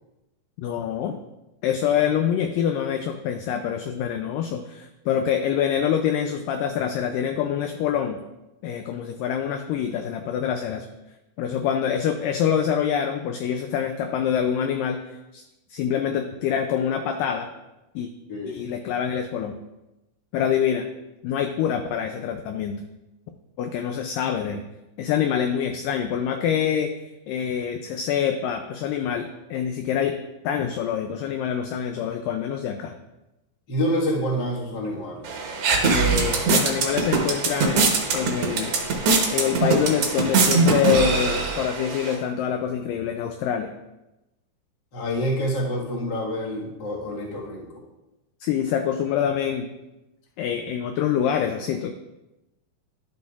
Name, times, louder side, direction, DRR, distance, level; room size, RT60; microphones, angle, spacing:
voice 1, 0.6-1.2 1.6-8.2 8.6-10.9 11.4-15.0 15.3-15.4 15.7-17.5 18.0-18.1 18.5-19.5 20.3-20.9 21.2-22.8 23.6-24.6 25.0-26.9 27.3-30.2 30.4-32.9 35.8-38.7 39.3-43.7 48.4-49.7 50.4-51.9, left 8 dB, 85° left, 6 dB, 1.9 m, -25 dB
voice 2, 33.7-35.3 44.9-47.8, equal, 45° left, -4 dB, 1.4 m, -27 dB
sound 1, 35.2-42.1, right 4 dB, 70° right, 1.5 m, -22 dB
12.0 x 7.0 x 2.4 m, 0.99 s
omnidirectional pair, 4.4 m